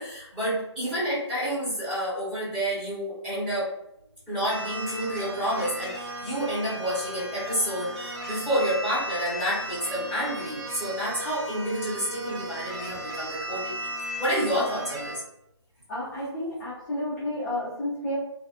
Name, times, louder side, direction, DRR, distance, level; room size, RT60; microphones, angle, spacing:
voice 1, 0.0-3.7 4.3-13.9 14.2-15.2, equal, 5° right, -12 dB, 1.1 m, -29 dB
sound 1, 4.5-15.2, right 1 dB, 60° right, 1.5 m, -36 dB
voice 2, 15.9-18.1, left 1 dB, 15° left, -10 dB, 0.5 m, -31 dB
2.6 x 2.5 x 2.4 m, 0.80 s
hypercardioid pair, 155°, 15 cm